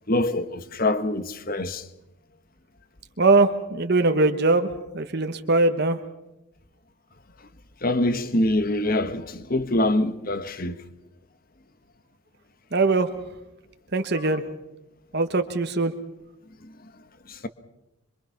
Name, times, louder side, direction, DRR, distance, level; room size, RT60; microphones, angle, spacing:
voice 1, 0.1-1.9 7.8-10.8 14.2-14.3 16.6-16.7 17.3-17.5, left 1 dB, 40° left, 1.2 m, -25 dB
voice 2, 3.2-6.0 12.7-13.1 13.9-14.4 15.1-15.9, right 3 dB, 50° right, 1.2 m, -21 dB
26.0 x 24.0 x 5.8 m
head